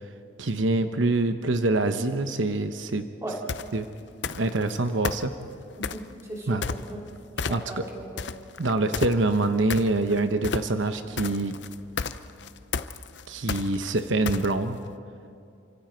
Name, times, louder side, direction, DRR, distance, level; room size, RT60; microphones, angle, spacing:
voice 1, 0.4-3.1 3.7-3.9 4.4-5.3 6.5-6.6 7.5-7.9 8.6-11.6 13.3-14.8, right 2 dB, 80° right, 8 dB, 0.9 m, -25 dB
sound 1, 3.5-3.7 4.2-4.7 5.0-6.1 6.6-7.1 7.4-7.9 8.2-14.8, left 5 dB, 65° left, 0.7 m, -31 dB
voice 2, 5.9-7.0 7.5-8.2, right 1 dB, 15° right, -2 dB, 3.1 m, -37 dB
28.5 x 25.0 x 4.5 m, 2.4 s
head